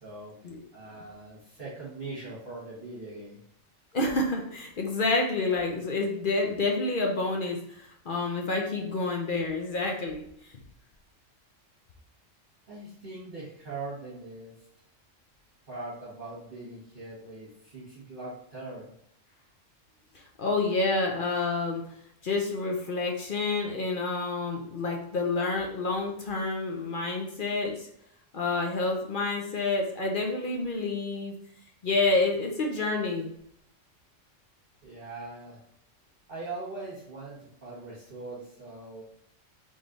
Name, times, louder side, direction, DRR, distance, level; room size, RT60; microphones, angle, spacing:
voice 1, 0.0-0.4 0.7-3.4 12.7-14.5 15.7-18.9 34.8-35.6 36.3-39.0, right 3 dB, 40° right, -9 dB, 1.6 m, -41 dB
voice 2, 3.9-10.2 20.4-21.8 22.2-27.9 28.3-31.3 31.8-33.3, left 3 dB, 50° left, 1 dB, 0.7 m, -28 dB
3.6 x 3.2 x 3.9 m, 0.70 s
omnidirectional pair, 1.3 m